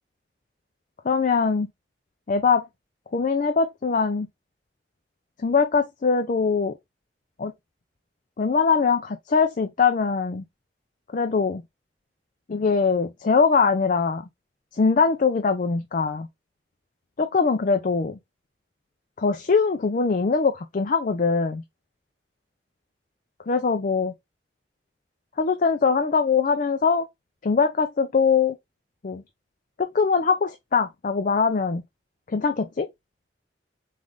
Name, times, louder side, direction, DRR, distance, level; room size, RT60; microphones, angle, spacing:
voice 1, 1.0-1.7 2.3-2.7 3.1-4.3 5.4-6.8 7.4-7.5 8.4-10.4 11.1-11.6 12.5-14.3 14.7-16.3 17.2-18.2 19.2-21.6 23.5-24.1 25.4-27.1 27.4-28.6 29.0-29.2 29.8-31.8 32.3-32.9, left 5 dB, 45° left, 0.5 m, -22 dB
3.7 x 3.2 x 3.6 m
head